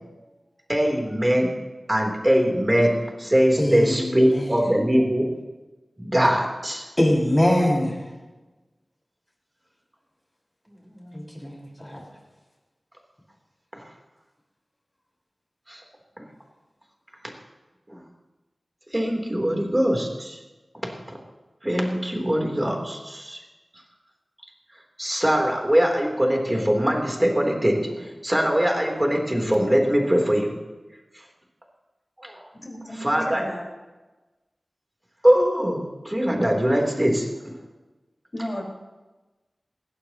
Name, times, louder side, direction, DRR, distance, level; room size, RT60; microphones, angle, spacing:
voice 1, 0.7-1.5 1.9-5.3 6.0-6.8 10.9-11.2 13.7-13.8 15.7-15.8 16.2-16.3 17.9-18.0 18.9-20.4 21.6-23.4 25.0-30.5 32.2-32.4 33.0-33.4 35.2-37.5, equal, 20° right, 1 dB, 3.4 m, -22 dB
voice 2, 3.6-4.7 7.0-8.0 11.1-12.0, left 1 dB, 20° left, -3 dB, 6.0 m, -23 dB
voice 3, 32.5-33.7 38.3-38.6, equal, 45° left, -1 dB, 4.4 m, -34 dB
20.5 x 16.0 x 3.0 m, 1.2 s
wide cardioid pair, 60°, 0 cm